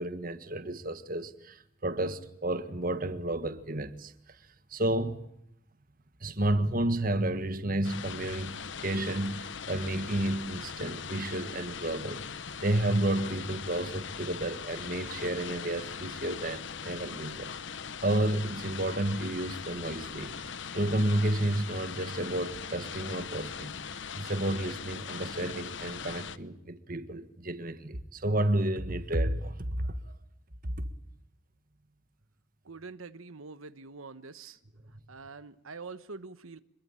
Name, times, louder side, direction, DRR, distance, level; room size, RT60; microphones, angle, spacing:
voice 1, 0.0-4.1 4.7-5.2 6.2-12.2 12.6-30.0 30.6-30.7, right 1 dB, 45° right, 1.6 m, -31 dB
sound 1, 7.8-26.4, left 6 dB, 60° left, 1.0 m, -40 dB
voice 2, 32.6-34.6 35.1-36.6, right 4 dB, 90° right, 1.2 m, -45 dB
26.5 x 22.0 x 8.9 m
head